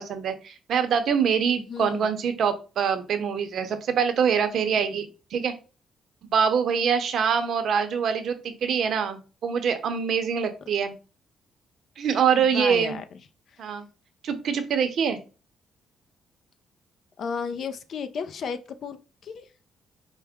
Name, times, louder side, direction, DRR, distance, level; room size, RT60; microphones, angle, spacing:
voice 1, 0.0-5.0 5.3-5.5 6.3-11.0 12.0-13.0 13.6-13.8 14.2-15.2, right 7 dB, 60° right, 8 dB, 0.7 m, -24 dB
voice 2, 1.7-2.1 12.3-13.0 17.2-19.0 19.2-19.5, left 6 dB, 55° left, 10 dB, 0.4 m, -33 dB
4.7 x 2.1 x 3.5 m, 0.33 s
cardioid pair, 125°, 0 cm